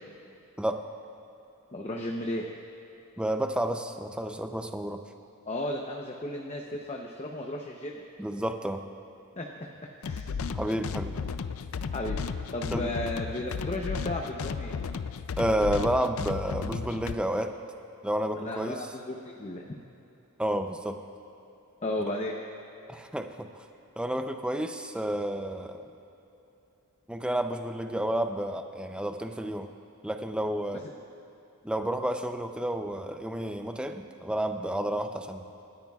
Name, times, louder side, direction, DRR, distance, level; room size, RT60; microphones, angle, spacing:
voice 1, 1.7-2.4 5.5-8.0 9.4-9.5 9.8-10.3 11.9-12.2 12.5-14.7 18.4-19.7 21.8-22.3, left 1 dB, 30° left, 0 dB, 0.8 m, -34 dB
voice 2, 3.2-5.0 8.2-8.8 10.5-11.2 12.7-12.9 15.4-17.6 18.0-18.9 20.4-21.0 22.9-23.5 24.0-25.9 27.1-29.7 30.0-30.8 31.6-35.7, right 1 dB, 5° right, 6 dB, 0.5 m, -30 dB
sound 1, 10.0-17.1, left 5 dB, 65° left, 0.4 m, -34 dB
28.5 x 13.5 x 2.4 m, 2.9 s
head